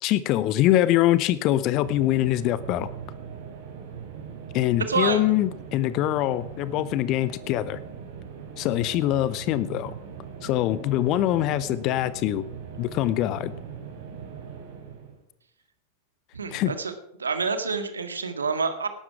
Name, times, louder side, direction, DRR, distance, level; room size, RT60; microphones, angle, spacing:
voice 1, 0.0-2.9 4.5-7.8 8.6-9.9 10.4-12.5 12.8-13.5 16.5-16.7, left 14 dB, 40° left, 16 dB, 0.7 m, -24 dB
sound 1, 1.4-15.2, right 7 dB, 50° right, 4.5 m, -40 dB
voice 2, 4.9-5.3 16.3-16.9 17.2-18.9, right 5 dB, 75° right, 9 dB, 1.9 m, -27 dB
18.5 x 12.0 x 4.8 m, 0.77 s
figure-of-eight pair, 90°, 0 cm